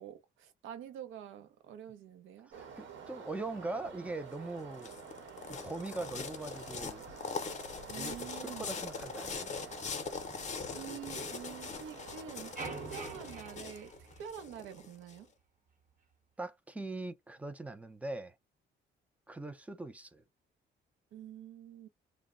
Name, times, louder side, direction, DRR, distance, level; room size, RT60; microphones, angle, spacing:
voice 1, 0.0-2.5 7.9-8.8 10.7-13.9 14.2-15.3 21.1-21.9, right 9 dB, 90° right, 0.6 m, -47 dB
sound 1, 2.5-13.3, right 6 dB, 70° right, 0.9 m, -50 dB
voice 2, 2.8-4.9 5.5-7.1 8.0-9.6 16.4-18.3 19.3-20.2, right 2 dB, 5° right, 0.4 m, -41 dB
sound 2, 4.3-15.1, left 5 dB, 35° left, 0.6 m, -42 dB
sound 3, 12.6-14.8, right 4 dB, 40° right, 1.0 m, -45 dB
2.1 x 2.0 x 3.6 m
cardioid pair, 90°, 20 cm